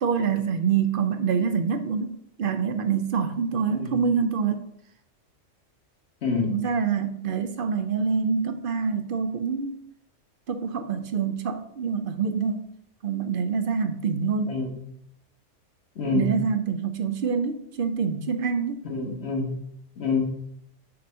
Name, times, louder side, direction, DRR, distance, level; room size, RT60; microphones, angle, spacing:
voice 1, 0.0-4.6 6.5-9.8 10.5-12.7 13.0-14.5 16.1-18.8, right 6 dB, 60° right, 8 dB, 0.6 m, -26 dB
voice 2, 6.2-6.6 14.5-14.8 15.9-16.3 18.8-19.5 20.0-20.3, left 4 dB, 60° left, 0 dB, 1.5 m, -27 dB
6.6 x 2.7 x 5.5 m, 0.71 s
omnidirectional pair, 1.2 m